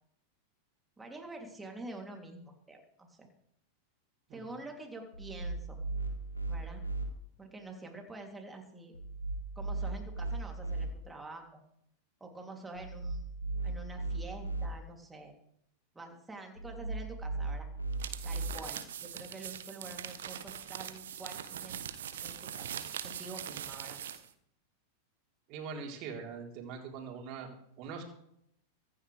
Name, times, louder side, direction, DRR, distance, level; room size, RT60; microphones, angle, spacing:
voice 1, 1.0-3.3 4.3-5.8 6.5-6.8 7.4-8.9 9.5-11.6 12.2-13.3 13.6-15.3 15.9-17.7 18.2-21.8 22.2-24.0, right 2 dB, 10° right, 2 dB, 3.3 m, -47 dB
sound 1, 5.1-7.1 8.9-10.9 12.7-14.7 16.6-18.5, right 3 dB, 80° left, 1.9 m, -37 dB
sound 2, 17.9-24.3, right 9 dB, 60° right, 1.1 m, -42 dB
voice 2, 25.5-27.5 27.8-28.0, right 5 dB, 40° right, 0 dB, 4.2 m, -42 dB
24.0 x 9.9 x 3.5 m, 0.73 s
figure-of-eight pair, 90°, 0 cm